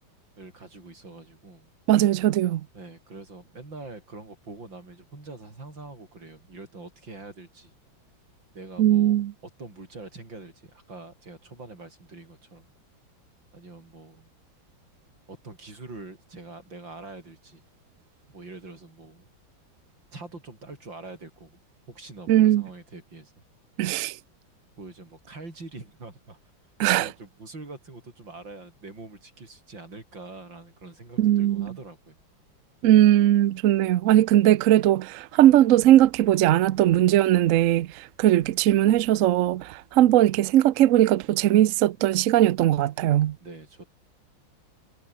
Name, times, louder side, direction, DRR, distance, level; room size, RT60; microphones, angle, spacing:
voice 1, 0.4-1.7 2.7-7.7 8.5-9.2 9.6-12.7 13.5-14.3 15.3-17.6 18.3-19.3 20.1-21.6 21.9-23.3 24.8-26.4 26.8-32.2 43.4-43.8, right 3 dB, 65° right, 6.6 m, -44 dB
voice 2, 1.9-2.6 8.8-9.3 22.3-22.6 23.8-24.2 26.8-27.1 31.2-31.8 32.8-43.4, right 13 dB, 85° right, 0.7 m, -19 dB
omnidirectional pair, 2.2 m